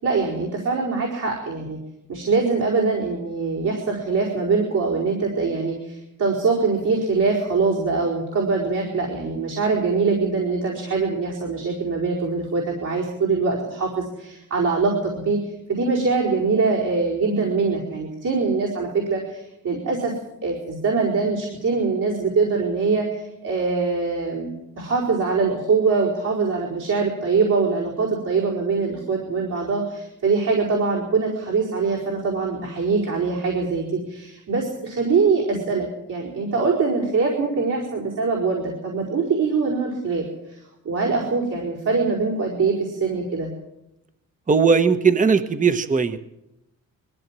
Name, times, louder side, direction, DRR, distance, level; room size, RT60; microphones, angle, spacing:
voice 1, 0.0-1.8 2.1-15.4 15.7-20.1 20.4-24.5 24.8-40.6 40.8-43.5, right 4 dB, 65° right, -5 dB, 5.0 m, -23 dB
voice 2, 44.5-46.2, right 5 dB, 25° right, 9 dB, 1.1 m, -18 dB
22.0 x 15.5 x 7.6 m, 0.86 s
wide cardioid pair, 135°, 33 cm